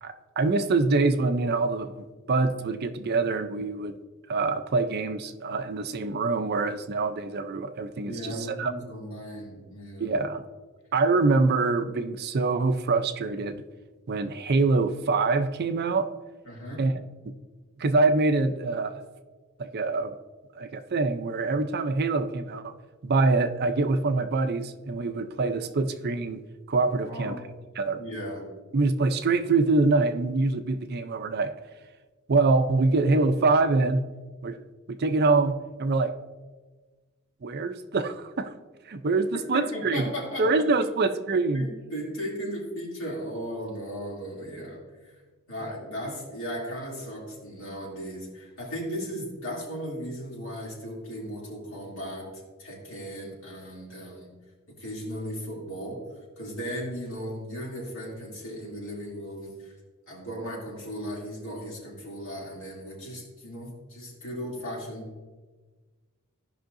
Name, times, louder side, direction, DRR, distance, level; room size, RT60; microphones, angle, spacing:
voice 1, 0.0-4.0 4.3-8.7 10.0-10.4 10.9-13.6 14.1-16.1 16.8-16.9 17.2-17.3 17.8-19.0 19.6-20.2 20.6-22.7 23.0-26.4 26.7-27.4 27.8-28.0 28.7-31.5 32.3-34.0 34.4-34.6 34.9-36.2 37.4-38.5 38.9-40.0 40.4-41.7, right 3 dB, 45° right, 9 dB, 0.5 m, -25 dB
voice 2, 8.0-10.2 16.4-16.8 27.0-27.5 27.8-28.5 39.5-40.5 41.5-45.2 45.5-54.3 54.7-56.0 56.4-59.8 60.1-65.1, equal, 60° left, -4 dB, 2.7 m, -36 dB
15.5 x 5.5 x 2.6 m, 1.3 s
head